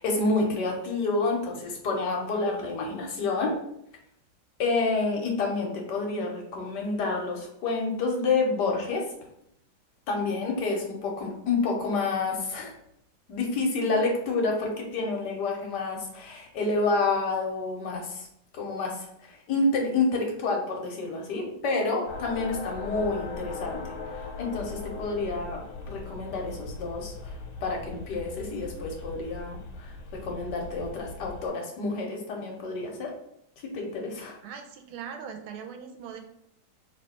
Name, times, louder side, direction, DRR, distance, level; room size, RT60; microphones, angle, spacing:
voice 1, 0.0-3.6 4.6-9.1 10.1-12.7 13.3-18.3 18.5-27.3 27.6-33.1 33.6-34.4, left 3 dB, 60° left, 1 dB, 1.3 m, -29 dB
sound 1, 22.1-31.5, left 3 dB, 85° left, 1.6 m, -39 dB
voice 2, 34.4-36.2, right 7 dB, 85° right, 5 dB, 1.5 m, -40 dB
3.2 x 3.0 x 4.2 m, 0.76 s
omnidirectional pair, 2.2 m